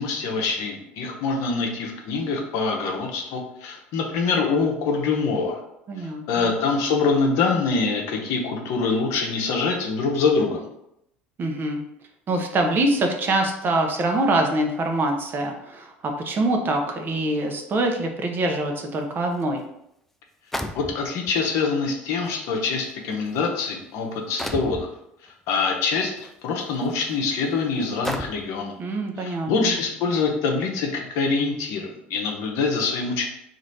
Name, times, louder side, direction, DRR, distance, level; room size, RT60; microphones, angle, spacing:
voice 1, 0.0-5.6 6.3-10.7 20.7-24.9 25.5-26.1 26.4-28.7 29.2-33.3, left 4 dB, 60° left, 1 dB, 0.7 m, -24 dB
voice 2, 5.9-6.5 11.4-11.8 12.3-19.6 28.8-29.8, right 2 dB, 35° right, 3 dB, 0.7 m, -24 dB
sound 1, 19.4-19.5 20.5-21.3 22.2-22.3 23.1-23.4 24.4-24.9 26.2-26.3 26.9-27.0 28.0-28.6, equal, 5° left, 0.3 m, -31 dB
3.1 x 2.5 x 4.0 m, 0.79 s
hypercardioid pair, 70°, 6 cm